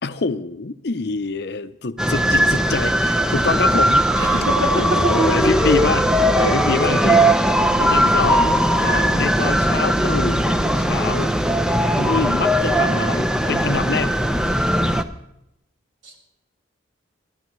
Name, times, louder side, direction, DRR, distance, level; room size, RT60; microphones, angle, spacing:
voice 1, 0.0-4.1 4.7-7.3 7.5-8.5 9.1-11.3 12.0-14.2, left 4 dB, 55° left, 12 dB, 0.6 m, -25 dB
sound 1, 2.0-15.0, equal, 5° right, 0.5 m, -19 dB
voice 2, 4.2-5.7 6.4-6.5 8.8-9.1 16.0-16.2, equal, 70° right, -1 dB, 3.8 m, -25 dB
23.0 x 13.5 x 3.1 m, 0.82 s
head